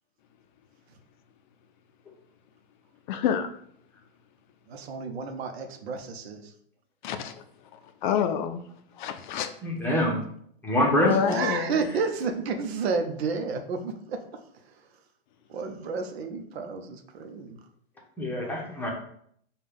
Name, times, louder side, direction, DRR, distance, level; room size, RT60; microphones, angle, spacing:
voice 1, 3.1-3.5 7.0-7.3 8.0-8.6 9.0-9.5 11.0-11.8, left 8 dB, 50° left, 7 dB, 0.5 m, -27 dB
voice 2, 4.7-6.5 11.3-14.4 15.5-17.6, right 4 dB, 80° right, 6 dB, 0.7 m, -31 dB
voice 3, 9.6-10.2 10.6-11.2 18.2-18.9, left 1 dB, 5° left, -2 dB, 0.8 m, -24 dB
5.3 x 2.3 x 3.4 m, 0.67 s
supercardioid pair, 140°, 31 cm